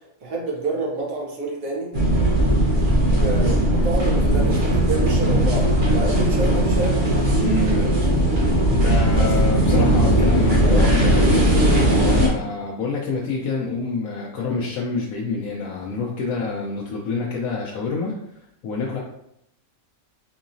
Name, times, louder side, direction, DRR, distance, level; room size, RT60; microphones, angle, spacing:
voice 1, 0.2-1.9 3.0-7.1 9.1-9.3 9.7-9.9 10.6-11.4, right 3 dB, 85° right, -2 dB, 1.5 m, -28 dB
sound 1, 1.9-12.3, right 1 dB, 40° right, 1.0 m, -18 dB
voice 2, 7.4-7.9 8.7-11.5 12.0-18.1 18.6-19.0, left 4 dB, 85° left, -3 dB, 1.1 m, -27 dB
4.6 x 2.9 x 2.6 m, 0.77 s
omnidirectional pair, 1.4 m